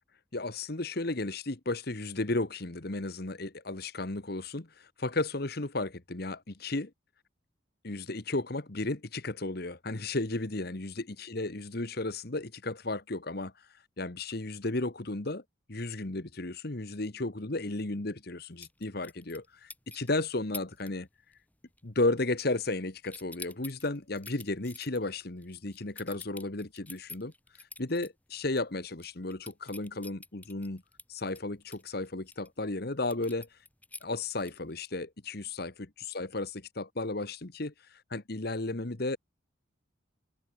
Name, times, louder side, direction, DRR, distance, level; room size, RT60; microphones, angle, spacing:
voice 1, 0.3-6.9 7.8-13.5 14.0-15.4 15.7-21.1 21.8-27.3 27.8-30.8 31.1-33.5 34.0-37.7 38.1-39.2, left 2 dB, 50° left, 1.4 m, -34 dB
sound 1, 18.6-19.4 19.7-20.1 20.5-20.9 21.2-21.5 21.8-22.8 23.0-28.1 28.5-28.6 28.9-32.5 33.1-34.7, left 3 dB, 10° left, 4.6 m, -47 dB
open air
head